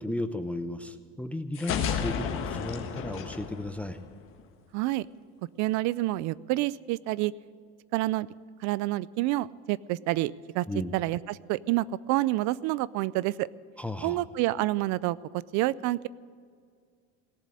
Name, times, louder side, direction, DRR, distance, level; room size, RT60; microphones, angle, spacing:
voice 1, 0.0-4.0 10.7-10.9 13.8-14.2, left 1 dB, 5° left, 10 dB, 0.3 m, -35 dB
sound 1, 1.5-4.4, left 6 dB, 40° left, 1.5 m, -32 dB
voice 2, 4.7-5.1 5.6-7.3 7.9-8.3 8.6-10.7 10.9-13.5 14.0-15.2 15.5-16.1, right 17 dB, 60° right, 21 dB, 0.4 m, -28 dB
17.5 x 7.5 x 9.8 m, 2.1 s
cardioid pair, 170°, 32 cm